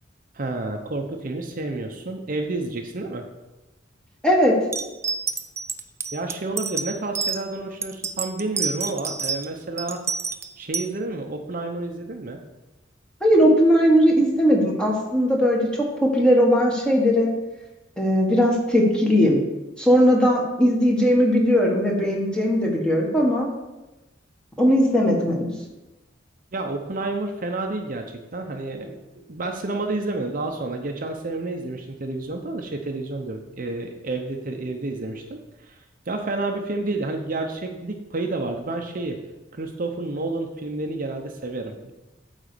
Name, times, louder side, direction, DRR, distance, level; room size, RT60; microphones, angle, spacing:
voice 1, 0.3-3.3 6.1-10.0 10.6-12.4 26.5-28.0 28.3-35.8 36.1-39.2 39.5-41.9, right 2 dB, 45° right, 4 dB, 0.7 m, -30 dB
voice 2, 4.2-4.6 13.2-17.3 18.0-19.4 19.8-23.5 24.6-25.5, equal, 5° left, -1 dB, 1.4 m, -19 dB
sound 1, 4.7-7.4 7.8-9.5 9.8-10.9, right 5 dB, 15° right, 0.4 m, -28 dB
9.0 x 4.1 x 6.7 m, 1.0 s
head